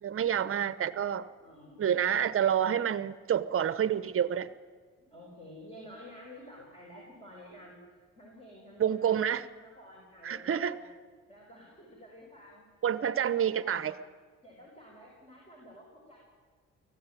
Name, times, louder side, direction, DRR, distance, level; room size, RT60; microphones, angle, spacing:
voice 1, 0.0-1.3 1.8-4.5 8.8-9.4 10.2-10.8 12.8-13.9, right 9 dB, 45° right, 15 dB, 1.0 m, -28 dB
voice 2, 1.4-2.3 5.0-7.8 8.2-9.2 9.6-10.9 11.3-12.6 13.0-14.0 14.4-16.2, left 1 dB, 20° left, -2 dB, 5.8 m, -51 dB
19.0 x 15.0 x 9.1 m, 1.5 s
cardioid pair, 90°, 30 cm